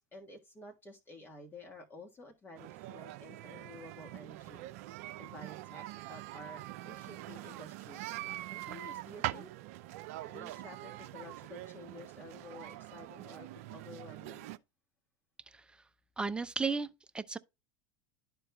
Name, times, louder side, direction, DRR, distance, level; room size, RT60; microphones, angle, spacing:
voice 1, 0.0-9.5 10.2-14.5, left 2 dB, 25° left, 1.6 m, -52 dB
sound 1, 2.6-14.6, right 16 dB, 65° right, 0.5 m, -44 dB
voice 2, 16.2-17.4, right 4 dB, 10° right, 0.6 m, -34 dB
12.5 x 4.5 x 2.3 m
hypercardioid pair, 95°, 9 cm